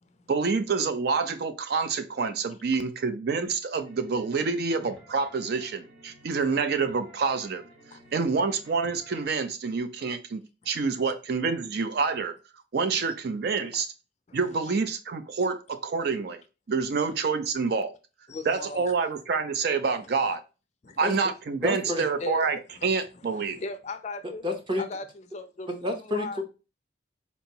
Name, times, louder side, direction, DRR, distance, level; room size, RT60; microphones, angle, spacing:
voice 1, 0.3-7.6 8.1-12.4 12.7-13.9 14.3-16.4 16.7-17.9 18.5-20.4 21.0-23.6, right 4 dB, 55° right, 0.4 m, -27 dB
sound 1, 3.8-9.3, right 1 dB, 75° right, 1.5 m, -53 dB
voice 2, 7.9-8.4 10.6-10.7 12.8-13.1 13.7-13.8 14.3-14.7 18.3-19.0 20.1-20.2 20.8-21.0 21.9-24.4 24.8-26.4, left 3 dB, 35° left, 0.4 m, -40 dB
voice 3, 21.6-22.0 24.4-24.8 25.7-26.3, left 1 dB, 25° right, 0.7 m, -29 dB
4.3 x 2.9 x 2.7 m
head